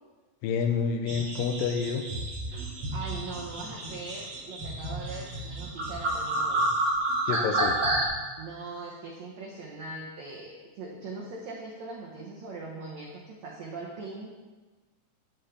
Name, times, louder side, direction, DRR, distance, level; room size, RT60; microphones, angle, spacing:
voice 1, 0.4-2.1 7.3-7.8, left 6 dB, 80° left, 4 dB, 2.1 m, -28 dB
sound 1, 1.1-8.1, right 1 dB, 65° right, 1.1 m, -30 dB
voice 2, 2.5-6.7 7.1-7.2 8.4-14.3, right 3 dB, 85° right, -2 dB, 1.5 m, -41 dB
8.7 x 7.8 x 3.3 m, 1.3 s
omnidirectional pair, 4.4 m